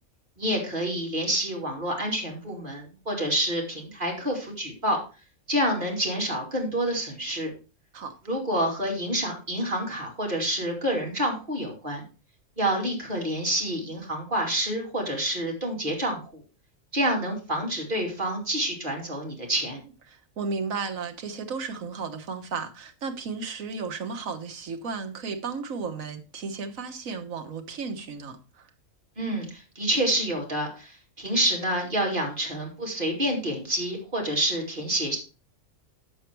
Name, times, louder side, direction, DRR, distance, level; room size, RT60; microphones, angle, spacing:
voice 1, 0.4-5.0 5.5-7.5 8.3-12.0 12.6-16.4 16.9-19.8 29.2-29.5 29.8-35.2, right 1 dB, 35° right, 2.7 m, -28 dB
voice 2, 20.1-28.7 29.2-29.4, right 4 dB, 75° right, 1.6 m, -34 dB
8.2 x 7.1 x 4.5 m
omnidirectional pair, 1.4 m